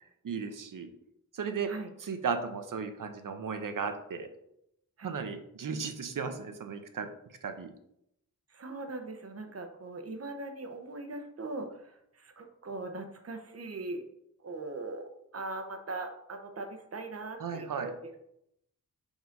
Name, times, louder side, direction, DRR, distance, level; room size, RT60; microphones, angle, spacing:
voice 1, 0.2-0.9 1.3-1.7 2.0-4.3 5.0-7.1 7.4-7.7 17.4-17.9, right 5 dB, 85° right, 7 dB, 0.8 m, -35 dB
voice 2, 8.5-14.0 14.4-18.2, right 2 dB, 50° right, 5 dB, 0.9 m, -40 dB
5.0 x 3.9 x 5.2 m, 0.77 s
wide cardioid pair, 120°, 31 cm